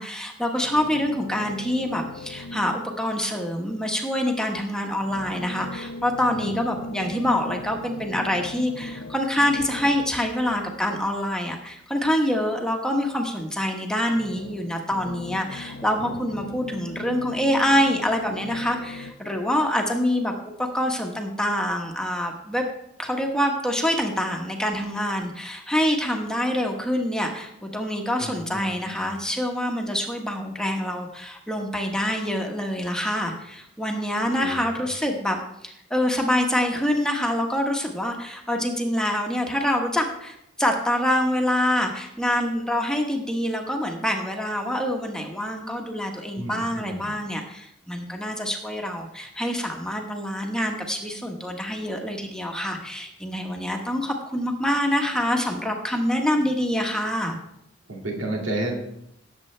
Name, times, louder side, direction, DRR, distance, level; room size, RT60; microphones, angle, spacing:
voice 1, 0.0-20.3 20.7-22.6 23.0-57.4, equal, 5° left, 1 dB, 1.2 m, -26 dB
sound 1, 0.6-3.2 5.0-12.0 14.0-19.1, left 2 dB, 75° left, 0.7 m, -39 dB
voice 2, 6.3-7.2 16.0-16.5 28.2-29.1 34.4-34.9 46.3-47.2 57.9-58.8, right 1 dB, 80° right, 0 dB, 2.2 m, -33 dB
17.5 x 7.6 x 3.3 m, 0.77 s
head